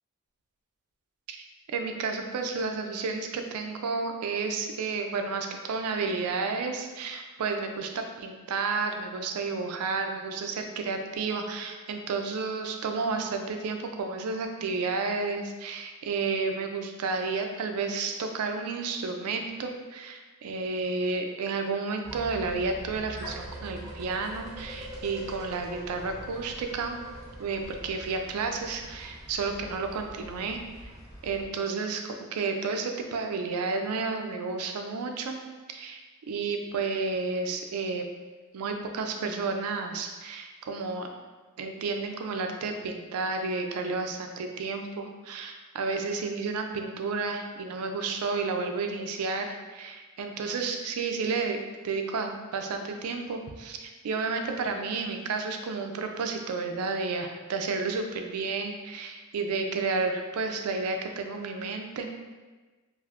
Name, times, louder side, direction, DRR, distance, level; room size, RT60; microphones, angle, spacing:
voice 1, 1.7-27.0 27.4-30.9 31.2-35.4 35.7-38.0 38.5-41.1 41.6-51.6 51.8-62.1, right 4 dB, 85° right, 5 dB, 0.4 m, -31 dB
sound 1, 22.0-31.4, right 1 dB, 15° right, 0.5 m, -43 dB
2.5 x 2.4 x 3.4 m, 1.3 s
head